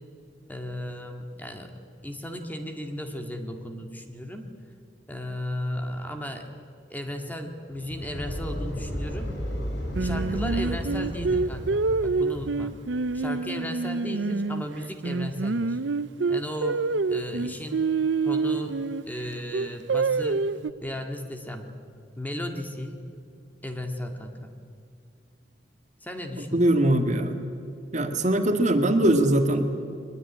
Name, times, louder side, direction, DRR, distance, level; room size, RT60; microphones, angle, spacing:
voice 1, 0.5-1.7 2.0-4.5 5.1-6.5 6.9-9.3 10.0-12.7 13.1-15.8 16.3-16.8 17.1-17.9 18.2-18.8 19.1-20.5 20.8-21.7 22.2-23.0 23.6-24.5 26.0-26.6, equal, 10° left, 4 dB, 2.0 m, -35 dB
sound 1, 7.7-12.9, equal, 75° left, 6.3 m, -33 dB
Singing, 9.9-14.6 15.0-19.0 19.5-20.7, right 4 dB, 90° right, 0.6 m, -26 dB
voice 2, 26.5-27.4 27.9-29.6, right 1 dB, 40° right, 6 dB, 1.9 m, -21 dB
22.5 x 21.0 x 9.9 m, 2.3 s
head